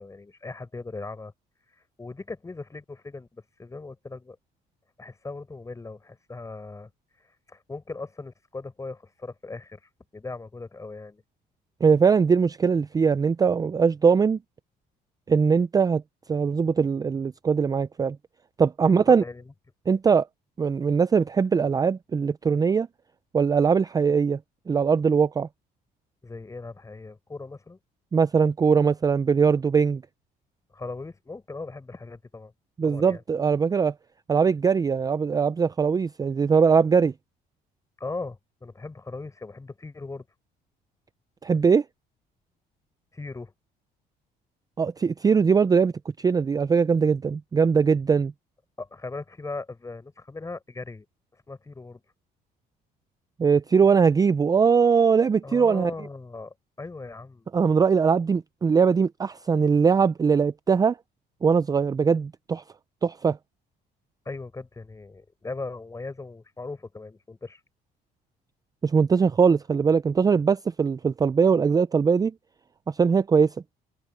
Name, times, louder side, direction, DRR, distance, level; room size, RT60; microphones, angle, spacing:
voice 1, 0.0-1.3 2.0-4.4 5.0-6.9 7.5-9.8 10.1-11.2 18.8-19.5 26.2-27.8 30.7-32.5 32.8-33.2 38.0-40.2 43.1-43.5 48.8-51.0 51.5-52.0 55.4-57.5 64.2-67.6, left 3 dB, 20° left, 5.0 m, -38 dB
voice 2, 11.8-14.4 15.3-16.0 16.3-18.2 18.6-19.2 19.9-20.3 20.6-22.9 23.3-24.4 24.7-25.5 28.1-30.0 32.8-33.9 34.3-37.1 41.4-41.8 44.8-48.3 53.4-55.9 57.5-61.0 61.4-62.6 63.0-63.4 68.8-72.3 72.9-73.5, right 5 dB, 20° right, 0.4 m, -21 dB
cardioid pair, 110°, 17 cm